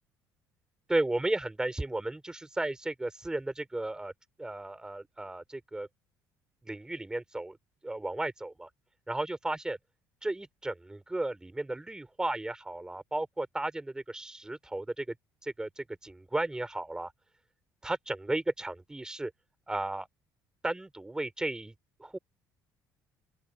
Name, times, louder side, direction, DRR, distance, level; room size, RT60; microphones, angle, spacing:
voice 1, 0.9-4.1 4.4-5.9 6.6-7.6 7.8-8.7 9.1-9.8 10.2-15.2 15.4-17.1 17.8-19.3 19.7-20.1 20.6-21.7 22.0-22.2, right 2 dB, 10° right, 4.0 m, -34 dB
open air
cardioid pair, 115°, 7 cm